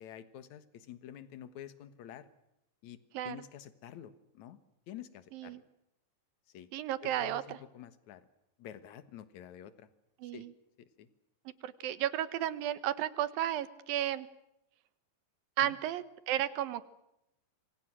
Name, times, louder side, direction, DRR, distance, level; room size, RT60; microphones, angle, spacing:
voice 1, 0.0-2.3 2.8-3.0 3.2-4.6 4.9-5.6 6.5-6.7 7.0-8.3 8.6-9.9 10.3-10.5 10.8-11.1 15.6-15.7, left 10 dB, 60° left, 13 dB, 2.6 m, -48 dB
voice 2, 5.3-5.6 6.7-7.6 10.2-10.5 11.5-14.3 15.6-16.8, right 12 dB, 90° right, 15 dB, 3.0 m, -33 dB
27.0 x 25.5 x 6.2 m, 0.84 s
omnidirectional pair, 4.0 m